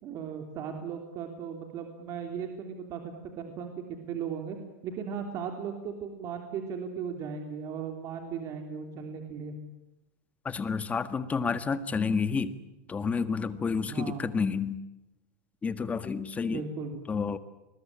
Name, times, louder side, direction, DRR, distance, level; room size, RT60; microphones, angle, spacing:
voice 1, 0.0-4.6 4.8-9.6 13.9-14.3 16.4-17.0, right 6 dB, 40° right, 5 dB, 3.4 m, -37 dB
voice 2, 10.4-12.5 12.9-14.8 15.6-16.6 17.1-17.4, left 5 dB, 15° left, 13 dB, 1.6 m, -30 dB
27.5 x 21.5 x 8.9 m, 0.99 s
supercardioid pair, 140°, 8 cm